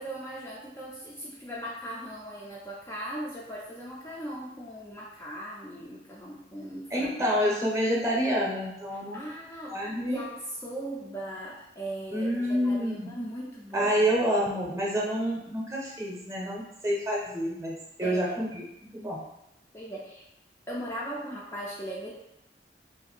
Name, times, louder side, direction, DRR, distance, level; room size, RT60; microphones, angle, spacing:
voice 1, 0.0-7.1 9.1-9.8 10.1-10.3 10.6-14.1 18.0-18.2 19.7-20.2 20.7-22.1, right 1 dB, 15° left, -5 dB, 0.4 m, -38 dB
voice 2, 6.9-9.2 9.7-10.2 12.1-13.1 13.7-19.2, equal, 15° right, -3 dB, 0.7 m, -28 dB
2.5 x 2.5 x 3.9 m, 0.84 s
head